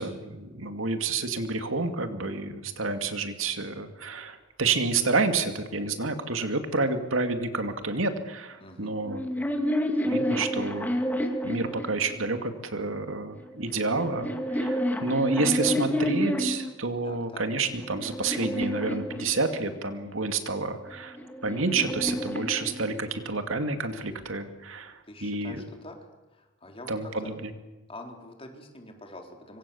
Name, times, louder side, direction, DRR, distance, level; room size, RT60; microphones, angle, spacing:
voice 1, 0.0-9.2 10.1-11.0 11.4-21.2 21.4-25.6 26.9-27.5, right 3 dB, 80° right, 7 dB, 2.5 m, -29 dB
voice 2, 8.6-8.9 17.0-17.4 25.0-26.0 26.3-27.3 27.9-29.6, left 1 dB, 30° left, 3 dB, 4.0 m, -45 dB
sound 1, 9.0-12.4 13.4-16.8 17.4-19.8 20.9-23.3, equal, 10° left, 2.2 m, -30 dB
25.5 x 25.0 x 7.2 m, 1.1 s
head